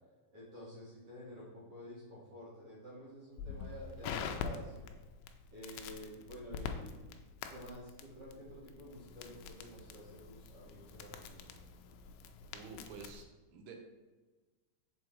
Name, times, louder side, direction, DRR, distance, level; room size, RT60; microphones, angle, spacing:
voice 1, 0.3-4.9 5.5-7.1 7.5-11.5, equal, 55° right, -7 dB, 1.8 m, -50 dB
Crackle, 3.4-13.2, left 6 dB, 85° left, 2.0 m, -45 dB
voice 2, 12.5-13.8, right 5 dB, 85° right, 4 dB, 2.8 m, -50 dB
5.4 x 4.7 x 4.5 m, 1.3 s
omnidirectional pair, 4.5 m